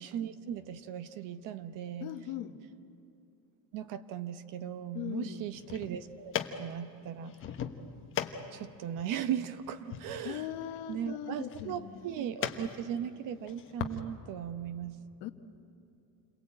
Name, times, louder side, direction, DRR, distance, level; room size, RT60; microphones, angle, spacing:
voice 1, 0.0-2.1 3.7-7.3 8.5-10.5 10.9-15.0, right 9 dB, 45° right, 12 dB, 1.0 m, -38 dB
voice 2, 2.0-2.6 4.9-5.5 10.2-12.1 15.2-15.3, left 11 dB, 55° left, 7 dB, 1.5 m, -39 dB
sound 1, 5.4-14.0, left 9 dB, 25° left, 1.2 m, -41 dB
29.0 x 22.5 x 8.8 m, 2.8 s
cardioid pair, 180°, 46 cm